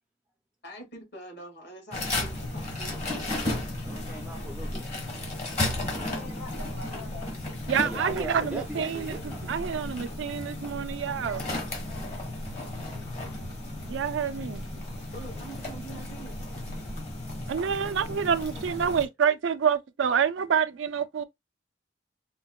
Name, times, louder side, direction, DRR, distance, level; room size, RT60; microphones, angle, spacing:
voice 1, 0.6-3.0 15.1-16.4, right 1 dB, 55° left, 1.5 m, -44 dB
sound 1, 1.9-19.1, left 1 dB, 35° left, 1.1 m, -34 dB
voice 2, 3.6-4.9 7.8-9.5, right 1 dB, 5° right, 0.4 m, -39 dB
voice 3, 5.9-7.3 7.7-7.9 8.3-8.4 11.0-11.5 11.8-12.3 17.3-17.6 18.3-18.4, left 2 dB, 85° left, 1.9 m, -46 dB
voice 4, 7.7-11.4 13.9-14.7 17.5-21.2, right 7 dB, 80° right, 0.4 m, -27 dB
4.5 x 2.1 x 2.2 m
head